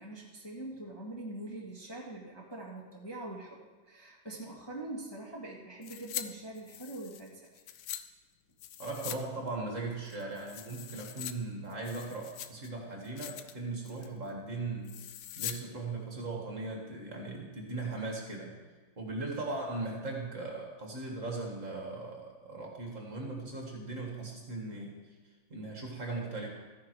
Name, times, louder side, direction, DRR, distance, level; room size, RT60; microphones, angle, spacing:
voice 1, 0.0-7.5, right 2 dB, 15° left, -3 dB, 1.7 m, -43 dB
sound 1, 5.8-6.3 6.6-8.0 8.6-9.2 9.5-9.6 10.1-11.3 11.7-12.7 13.0-13.5 13.8-14.2 14.8-15.6 15.9-16.0, left 11 dB, 70° left, 1.2 m, -42 dB
voice 2, 8.8-15.0 15.4-18.5 19.0-25.0 25.5-26.5, right 3 dB, 40° right, 0 dB, 2.1 m, -38 dB
14.0 x 9.8 x 4.8 m, 1.4 s
omnidirectional pair, 2.1 m